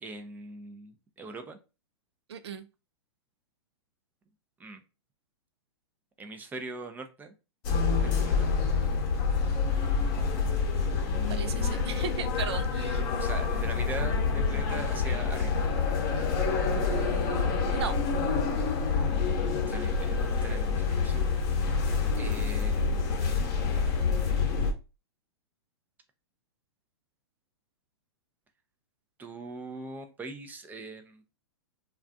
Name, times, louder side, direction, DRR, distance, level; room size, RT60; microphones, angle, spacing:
voice 1, 0.0-1.6 4.6-4.8 6.2-7.3 8.0-8.5 13.2-15.6 19.7-21.3 21.5-21.9 22.2-23.5 29.2-31.2, right 3 dB, 10° right, 0.5 m, -41 dB
voice 2, 2.3-2.7 11.3-13.0 16.2-16.3 16.8-18.0, right 6 dB, 65° right, 0.5 m, -37 dB
sound 1, 7.6-24.7, left 4 dB, 40° left, 0.8 m, -27 dB
2.3 x 2.2 x 2.6 m
hypercardioid pair, 115°, 14 cm